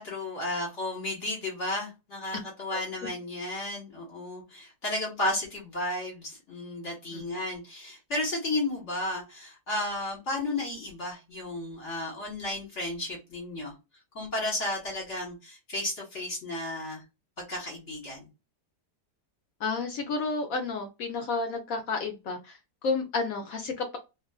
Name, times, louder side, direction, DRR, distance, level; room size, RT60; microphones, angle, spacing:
voice 1, 0.0-13.7 14.1-17.0 17.4-18.3, left 1 dB, 45° left, 1.3 m, -33 dB
voice 2, 19.6-22.6 22.8-24.0, left 4 dB, 70° left, 0.9 m, -31 dB
2.8 x 2.3 x 2.3 m
omnidirectional pair, 1.8 m